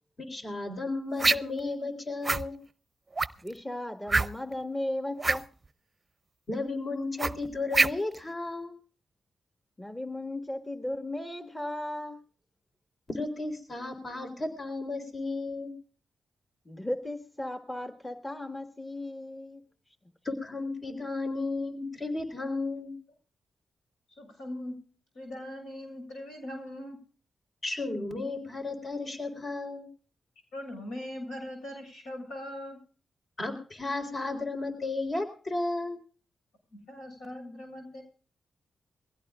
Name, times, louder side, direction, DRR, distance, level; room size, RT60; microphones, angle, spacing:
voice 1, 0.3-2.6 6.5-8.7 13.1-15.7 20.2-22.9 27.6-29.9 33.4-36.0, left 2 dB, 45° left, 3.8 m, -33 dB
sound 1, 1.2-1.6 2.2-2.5 3.2-3.5 4.1-4.5 5.2-5.4 7.2-8.2, right 3 dB, 35° right, 0.6 m, -25 dB
voice 2, 3.4-5.5 9.8-12.2 16.6-19.6, left 1 dB, 15° left, 1.6 m, -36 dB
voice 3, 24.2-24.8 25.1-27.0 30.5-32.8 36.7-38.0, left 1 dB, 85° left, 7.0 m, -40 dB
22.5 x 16.5 x 2.5 m
supercardioid pair, 45°, 0 cm